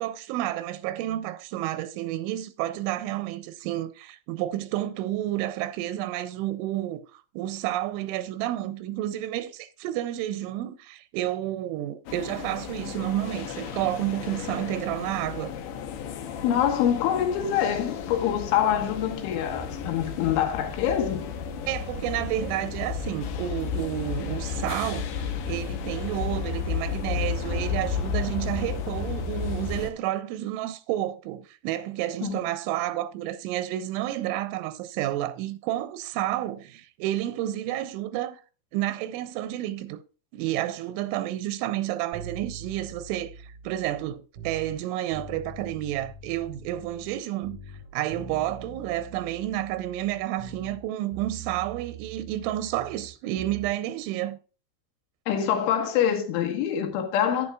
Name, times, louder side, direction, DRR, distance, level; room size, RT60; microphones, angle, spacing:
voice 1, 0.0-15.5 21.7-38.4 38.7-40.0 40.3-47.6 47.9-54.4, right 14 dB, 90° right, 3.1 m, -30 dB
sound 1, 12.1-29.9, left 6 dB, 70° left, 2.5 m, -33 dB
voice 2, 16.4-21.3 32.2-32.4 55.3-57.5, left 9 dB, 90° left, 3.8 m, -25 dB
sound 2, 42.1-44.8 45.1-47.2 47.4-50.8 51.1-53.7 54.0-54.1, right 4 dB, 65° right, 1.5 m, -43 dB
11.0 x 9.2 x 2.3 m
omnidirectional pair, 5.4 m